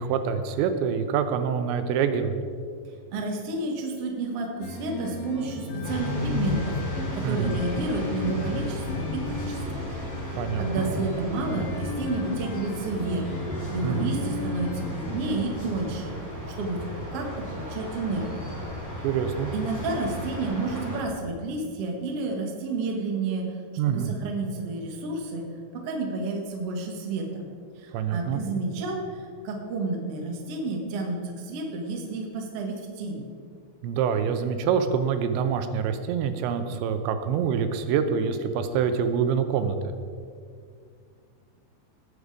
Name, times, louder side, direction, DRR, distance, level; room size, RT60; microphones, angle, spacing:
voice 1, 0.0-2.4 7.2-7.6 10.4-10.9 13.8-14.1 19.0-19.5 23.8-24.1 27.9-28.4 33.8-39.9, right 7 dB, 85° right, 9 dB, 3.0 m, -26 dB
voice 2, 2.9-9.9 10.2-13.3 13.7-16.2 16.6-16.8 17.1-18.6 19.5-23.6 23.8-25.4 25.7-27.4 27.8-33.2, right 3 dB, 65° right, 1 dB, 1.4 m, -31 dB
sound 1, 4.6-15.4, left 2 dB, 85° left, 4.6 m, -35 dB
sound 2, 5.8-21.0, left 1 dB, 5° left, 1.7 m, -34 dB
18.5 x 6.7 x 4.9 m, 2.2 s
omnidirectional pair, 5.3 m